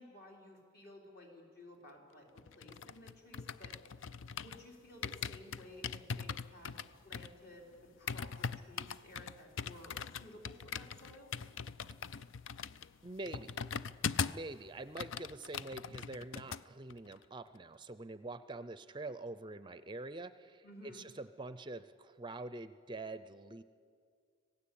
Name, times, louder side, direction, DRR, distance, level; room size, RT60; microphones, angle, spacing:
voice 1, 0.0-3.7 4.4-11.3 20.6-21.1, left 1 dB, 50° left, 0 dB, 4.2 m, -55 dB
sound 1, 2.4-4.7 5.0-14.5 14.8-16.6 16.9-17.2, left 6 dB, 75° left, 0.5 m, -41 dB
voice 2, 13.0-13.6 14.2-23.6, right 2 dB, 25° right, 13 dB, 0.5 m, -45 dB
26.0 x 17.0 x 8.6 m, 2.2 s
head